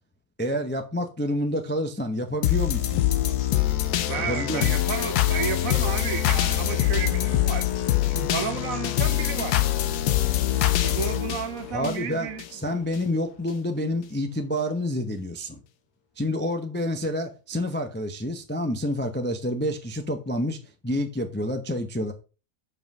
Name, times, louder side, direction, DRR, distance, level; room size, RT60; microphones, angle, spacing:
voice 1, 0.4-3.0 4.3-4.7 11.7-15.6 16.2-20.6 20.8-22.1, left 1 dB, 15° left, 0.4 m, -28 dB
sound 1, 2.4-12.5 12.9-13.0, left 13 dB, 80° left, 1.2 m, -24 dB
voice 2, 4.1-7.7 8.1-9.7 10.8-12.4, right 9 dB, 65° right, 1.0 m, -32 dB
5.6 x 5.4 x 5.4 m
omnidirectional pair, 1.7 m